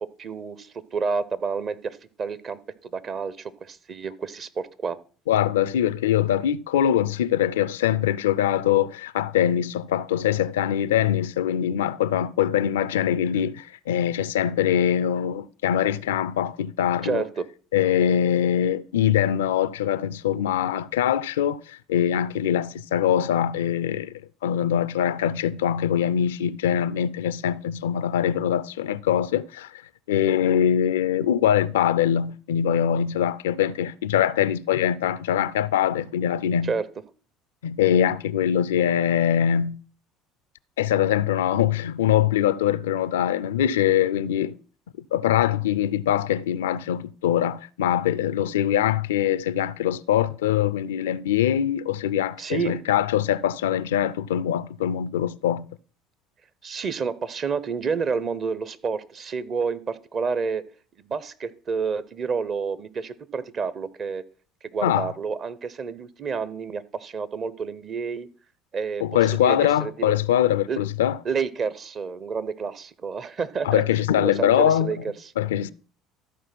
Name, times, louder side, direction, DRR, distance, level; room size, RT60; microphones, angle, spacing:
voice 1, 0.0-5.0 17.0-17.5 36.6-36.8 52.4-52.8 56.6-60.6 61.0-64.2 64.7-68.3 68.7-69.0 69.4-70.1 70.7-70.8 71.2-73.8 74.1-75.0 75.2-75.3, right 5 dB, 40° right, 0.9 m, -29 dB
voice 2, 5.3-17.2 17.7-24.1 24.4-29.8 30.1-36.7 37.6-39.8 40.8-44.6 45.1-55.7 64.8-65.1 69.0-71.2 73.6-75.0 75.4-75.7, left 10 dB, 75° left, 0.4 m, -23 dB
13.5 x 4.5 x 6.0 m
hypercardioid pair, 65°, 0 cm